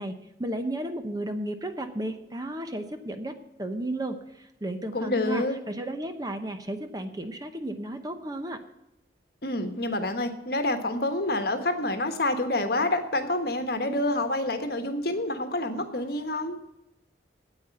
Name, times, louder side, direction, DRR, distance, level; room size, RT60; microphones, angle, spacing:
voice 1, 0.0-8.6, right 1 dB, 20° right, 8 dB, 0.8 m, -34 dB
voice 2, 4.9-5.6 9.4-16.6, left 1 dB, 55° left, 7 dB, 1.4 m, -27 dB
9.4 x 8.9 x 7.6 m, 0.90 s
head